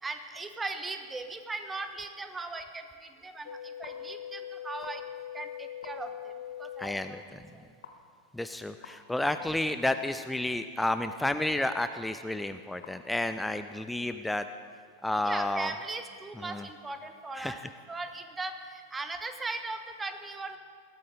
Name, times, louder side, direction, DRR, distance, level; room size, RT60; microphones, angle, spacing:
voice 1, 0.0-5.0 5.3-6.3 6.6-7.2 7.5-7.6 15.2-17.6 17.9-20.6, right 3 dB, 15° right, 8 dB, 1.0 m, -38 dB
sound 1, 3.5-6.9 7.8-7.9 8.8-8.9 9.8-9.9 10.8-10.9 11.8-11.9 12.8-12.9, left 10 dB, 65° left, 1.1 m, -41 dB
voice 2, 6.8-7.4 8.3-14.5 15.0-15.7 16.4-16.7 17.4-17.6, left 1 dB, 5° left, 9 dB, 0.4 m, -31 dB
20.5 x 12.5 x 3.8 m, 2.1 s
figure-of-eight pair, 90°, 0 cm